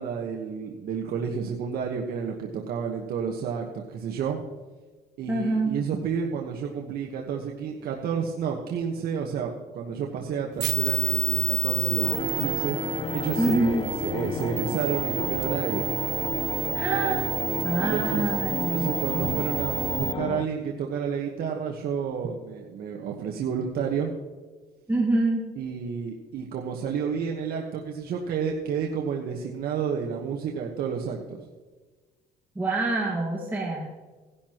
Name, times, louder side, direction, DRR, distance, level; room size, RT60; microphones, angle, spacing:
voice 1, 0.0-4.4 5.2-12.8 13.1-15.9 17.7-18.3 18.6-24.1 25.6-31.5, right 6 dB, 65° right, 0 dB, 1.3 m, -30 dB
voice 2, 5.3-5.7 13.4-13.9 16.7-19.3 24.9-25.5 32.6-34.0, right 2 dB, 10° right, -4 dB, 1.9 m, -26 dB
sound 1, 10.6-20.1, right 23 dB, 85° right, 0.4 m, -30 dB
sound 2, 12.0-20.5, left 7 dB, 30° left, 0.4 m, -32 dB
16.5 x 11.5 x 3.0 m, 1.3 s
cardioid pair, 110°, 17 cm